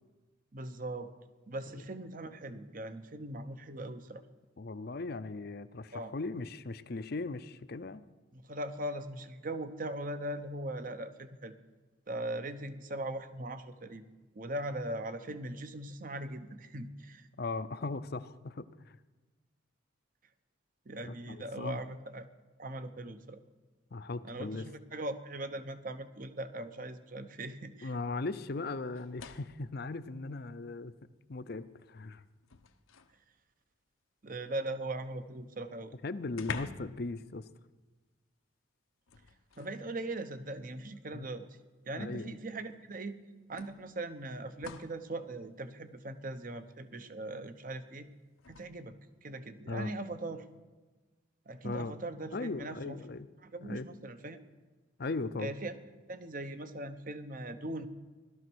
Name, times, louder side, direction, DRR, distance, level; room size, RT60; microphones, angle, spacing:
voice 1, 0.5-1.1 1.5-4.2 5.9-6.1 8.3-11.5 12.1-14.0 14.3-17.3 20.9-22.3 22.6-23.4 24.2-27.9 34.2-36.0 39.6-41.6 41.9-43.2 43.5-48.1 48.5-48.9 49.2-50.4 51.5-53.0 53.4-54.4 55.4-55.7 56.1-57.9, right 1 dB, 40° right, 10 dB, 0.9 m, -40 dB
voice 2, 4.6-8.1 17.4-19.0 21.0-21.8 23.9-24.7 27.8-30.9 31.3-32.2 36.0-37.5 41.1-41.3 41.9-42.3 49.7-49.9 51.6-51.9 52.3-53.3 53.6-53.9 55.0-55.5, left 3 dB, 50° left, 13 dB, 0.6 m, -38 dB
sound 1, 28.9-29.7 31.0-31.1 31.6-33.2 35.3-35.4 35.6-35.7 36.3-37.0 37.3-37.5 39.1-39.8 40.9-41.0 42.6-42.7 43.6-45.0 48.4-48.7, left 5 dB, 85° left, 0.8 m, -46 dB
17.0 x 12.5 x 6.2 m, 1.3 s
head